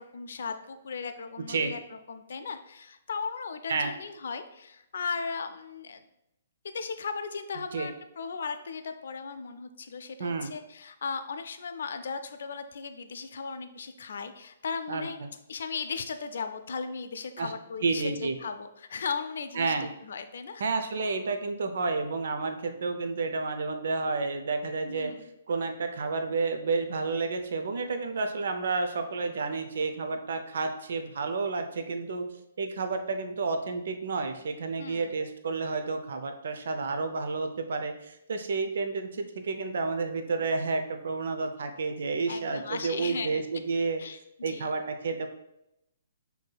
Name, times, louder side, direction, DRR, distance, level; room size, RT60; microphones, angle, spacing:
voice 1, 0.0-1.8 2.1-6.0 6.6-15.2 15.5-20.6 24.9-25.3 34.8-35.1 42.3-43.4 44.0-44.2 44.5-44.7, left 5 dB, 65° left, 8 dB, 0.4 m, -37 dB
voice 2, 10.2-10.5 14.9-15.3 17.4-17.5 17.8-18.4 19.5-19.9 20.6-25.1 25.5-32.3 32.6-44.0 44.4-45.3, right 4 dB, 65° right, 6 dB, 0.4 m, -30 dB
5.9 x 2.7 x 2.3 m, 0.84 s
hypercardioid pair, 135°, 0 cm